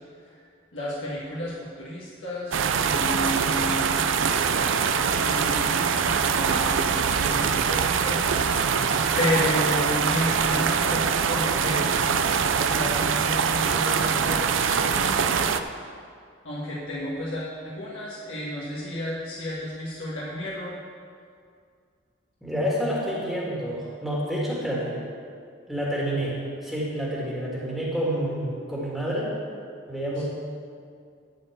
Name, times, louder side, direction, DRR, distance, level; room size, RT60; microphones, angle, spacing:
voice 1, 0.7-3.9 4.7-4.8 5.2-8.3 9.2-12.2 12.7-15.6 16.4-20.8 30.2-30.3, left 1 dB, 80° left, -7 dB, 1.7 m, -32 dB
sound 1, 2.5-15.6, right 6 dB, 80° right, 0.5 m, -23 dB
voice 2, 22.4-25.0 25.7-26.4 26.6-29.3 29.9-30.2, equal, ahead, -7 dB, 1.9 m, -28 dB
12.5 x 4.5 x 7.9 m, 2.2 s
head